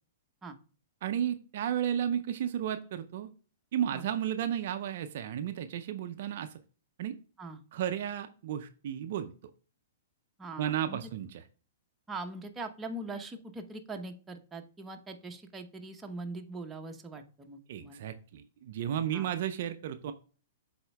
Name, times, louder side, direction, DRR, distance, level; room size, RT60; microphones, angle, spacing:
voice 1, 1.0-3.3 3.7-6.5 7.0-7.1 7.7-9.3 10.6-11.4 17.7-20.1, right 10 dB, 55° right, 9 dB, 0.5 m, -33 dB
voice 2, 10.4-11.1 12.1-18.0 19.1-19.3, right 2 dB, 15° right, 3 dB, 0.9 m, -42 dB
12.0 x 4.2 x 2.3 m, 0.40 s
figure-of-eight pair, 115°, 0 cm